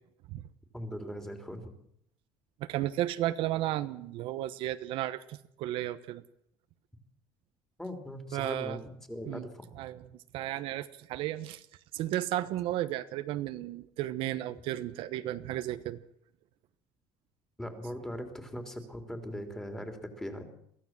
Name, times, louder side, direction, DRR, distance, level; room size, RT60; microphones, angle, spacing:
voice 1, 0.7-1.7 7.8-9.7 17.6-20.4, equal, 5° left, 5 dB, 3.4 m, -40 dB
voice 2, 2.6-6.2 8.3-8.8 9.3-9.5 9.8-10.0 10.3-11.6 11.9-16.0, right 14 dB, 70° right, 11 dB, 1.1 m, -33 dB
23.0 x 15.5 x 7.5 m, 0.72 s
cardioid pair, 140°, 10 cm